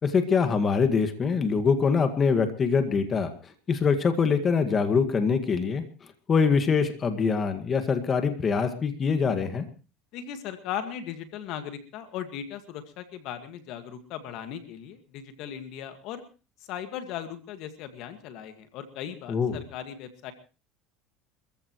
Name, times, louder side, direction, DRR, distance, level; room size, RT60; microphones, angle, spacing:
voice 1, 0.0-5.8 6.3-9.7 19.3-19.6, left 5 dB, 30° left, 8 dB, 1.9 m, -24 dB
voice 2, 10.1-16.2 16.6-20.3, left 9 dB, 65° left, 9 dB, 1.9 m, -38 dB
26.5 x 15.0 x 3.1 m, 0.34 s
supercardioid pair, 115°, 0 cm